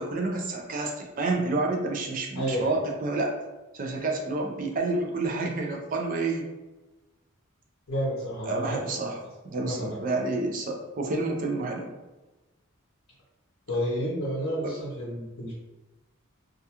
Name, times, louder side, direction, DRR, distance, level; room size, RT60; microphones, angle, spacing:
voice 1, 0.0-3.4 3.7-6.4 8.4-9.2 9.4-11.9 14.6-14.7, right 3 dB, 40° right, 2 dB, 0.4 m, -29 dB
voice 2, 2.3-2.8 7.9-9.3 9.6-10.0 13.7-15.5, equal, 70° left, -6 dB, 0.6 m, -30 dB
2.3 x 2.2 x 2.8 m, 1.1 s
head